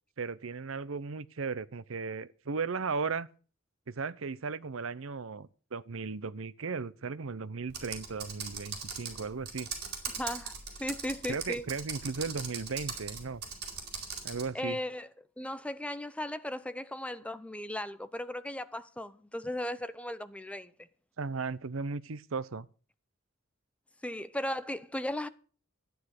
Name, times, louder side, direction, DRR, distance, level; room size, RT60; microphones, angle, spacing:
voice 1, 0.2-3.3 3.9-9.7 11.3-13.4 14.2-14.8 21.2-22.7, right 4 dB, 70° right, 0.7 m, -36 dB
Computer keyboard, 7.7-14.5, right 6 dB, 55° right, 4.3 m, -40 dB
voice 2, 10.2-11.7 14.5-15.1 15.4-20.7 24.0-25.3, left 1 dB, 5° left, 0.8 m, -36 dB
13.0 x 9.7 x 6.5 m
head